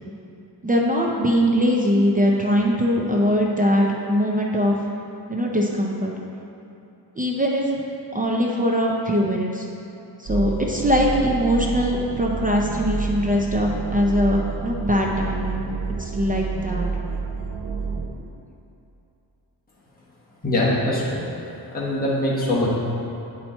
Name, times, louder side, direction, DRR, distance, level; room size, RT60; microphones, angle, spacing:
voice 1, 0.6-4.7 5.3-6.1 7.2-7.7 8.1-9.7 10.2-15.7 16.0-16.9, equal, 20° right, -2 dB, 0.5 m, -21 dB
sound 1, 10.3-18.1, right 5 dB, 75° right, 0.9 m, -29 dB
voice 2, 20.4-21.3 21.7-22.7, left 1 dB, 20° left, -6 dB, 1.2 m, -22 dB
8.4 x 4.4 x 4.3 m, 2.8 s
wide cardioid pair, 160°, 42 cm